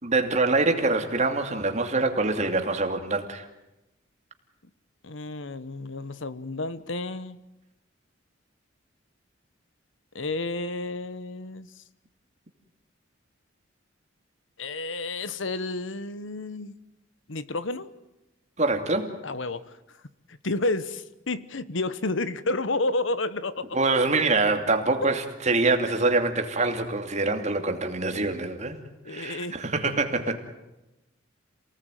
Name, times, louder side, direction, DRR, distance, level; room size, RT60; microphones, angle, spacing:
voice 1, 0.0-3.5 18.6-19.2 23.7-28.8 29.1-30.4, right 3 dB, 35° right, 6 dB, 2.7 m, -25 dB
voice 2, 5.0-7.4 10.1-11.8 14.6-16.7 17.3-17.9 19.2-19.8 20.3-23.8 29.0-29.6, left 2 dB, 70° left, 15 dB, 1.2 m, -31 dB
28.5 x 18.5 x 9.2 m, 0.96 s
head